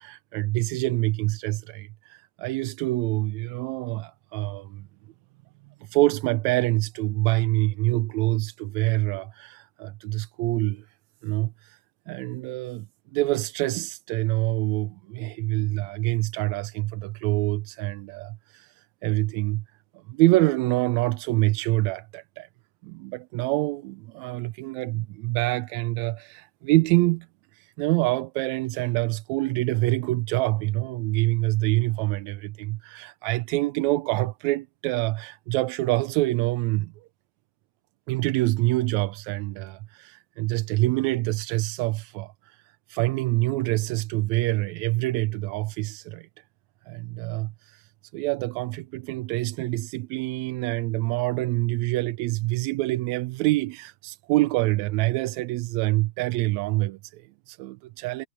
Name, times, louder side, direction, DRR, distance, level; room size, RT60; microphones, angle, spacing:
voice 1, 0.0-4.9 5.8-10.9 11.2-11.8 12.1-19.6 20.1-22.5 22.8-27.3 27.5-36.9 38.1-46.3 46.9-58.3, right 19 dB, 80° right, 1.8 m, -26 dB
omnidirectional pair, 3.3 m